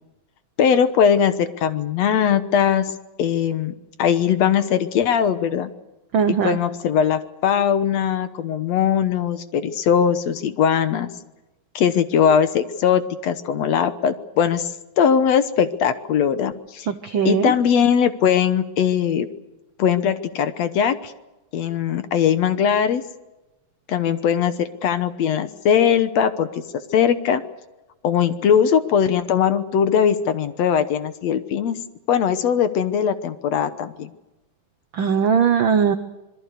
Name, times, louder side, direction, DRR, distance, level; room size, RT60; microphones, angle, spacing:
voice 1, 0.6-2.9 3.2-5.7 6.3-11.1 11.8-16.9 17.3-19.3 19.8-21.1 21.5-23.0 23.9-26.6 26.9-27.4 28.0-31.8 32.1-34.1, left 8 dB, 65° left, 11 dB, 2.1 m, -20 dB
voice 2, 6.1-6.6 16.9-17.5 34.9-35.9, right 7 dB, 80° right, 9 dB, 1.1 m, -19 dB
26.5 x 22.0 x 6.7 m, 1.0 s
omnidirectional pair, 3.6 m